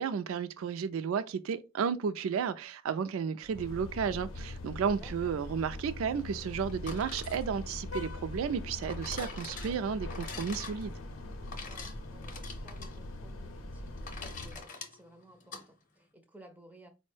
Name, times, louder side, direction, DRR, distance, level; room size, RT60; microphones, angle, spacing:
voice 1, 0.0-11.0, right 6 dB, 85° right, 0.3 m, -33 dB
sound 1, 3.4-14.6, left 2 dB, 80° left, 0.6 m, -42 dB
voice 2, 4.8-5.4 11.5-16.9, right 1 dB, 10° right, 0.4 m, -57 dB
sound 2, 6.7-15.6, left 4 dB, 40° left, 0.7 m, -46 dB
4.3 x 2.1 x 3.1 m
head